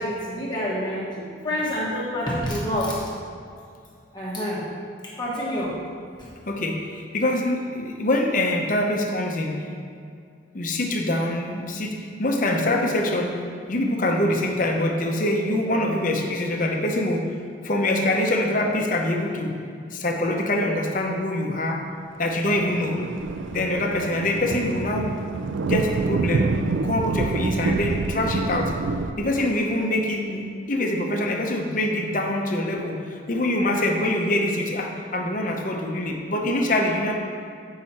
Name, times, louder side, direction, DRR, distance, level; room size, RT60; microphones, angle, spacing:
voice 1, 0.0-3.0 4.1-4.6 5.0-5.8, equal, 20° left, -6 dB, 1.3 m, -27 dB
voice 2, 6.5-9.7 10.5-13.4 13.7-17.2 17.6-19.5 19.9-21.8 22.2-23.0 23.5-25.1 25.7-26.5 26.8-28.7 29.2-30.4 30.7-37.1, left 1 dB, 45° left, 1 dB, 0.8 m, -24 dB
Thunder, 22.2-29.1, right 3 dB, 80° right, 0.4 m, -27 dB
8.3 x 5.6 x 4.2 m, 2.3 s
head